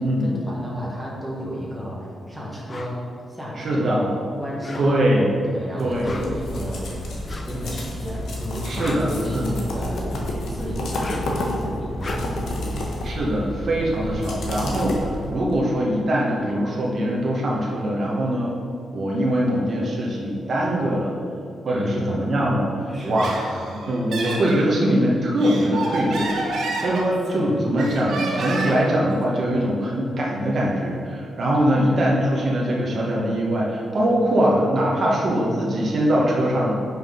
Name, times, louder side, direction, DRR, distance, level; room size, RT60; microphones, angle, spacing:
voice 1, 0.2-3.0 3.3-4.0 4.4-5.0 5.4-6.9 7.3-10.1 10.5-12.8 14.0-14.2 21.7-22.1 22.9-23.4 27.2-27.6 31.5-31.9, equal, ahead, -5 dB, 1.3 m, -32 dB
sound 1, 2.7-3.0 4.5-5.2 5.9-6.5 7.2-7.6 8.5-9.8 10.8-11.4 11.9-12.5 14.1-14.2 14.4-16.1, left 2 dB, 30° left, 0.5 m, -38 dB
voice 2, 3.6-4.2 4.8-5.3 5.8-6.1 8.6-9.5 13.0-18.5 18.9-21.2 21.6-36.7, right 1 dB, 45° right, -4 dB, 1.2 m, -22 dB
sound 2, 5.8-15.5, left 1 dB, 75° left, 1.3 m, -30 dB
Laughter, 23.0-24.7 25.2-27.4 27.8-28.9, right 2 dB, 80° right, 1.3 m, -29 dB
6.0 x 5.6 x 5.5 m, 2.4 s
wide cardioid pair, 155°, 0 cm